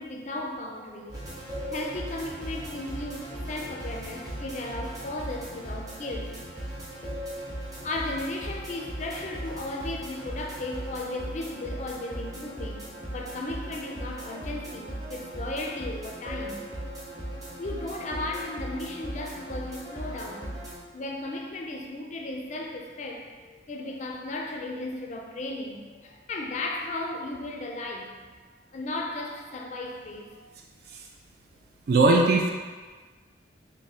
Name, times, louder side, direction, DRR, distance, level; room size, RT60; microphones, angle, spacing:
voice 1, 0.0-1.4 1.7-6.4 7.8-16.7 17.6-20.6 20.9-28.1 28.7-30.5, left 2 dB, 40° left, 0.4 m, -35 dB
sound 1, 1.1-20.8, right 1 dB, 20° right, 0.7 m, -38 dB
voice 2, 31.9-32.5, right 3 dB, 55° right, 0.4 m, -19 dB
3.5 x 2.1 x 4.0 m
head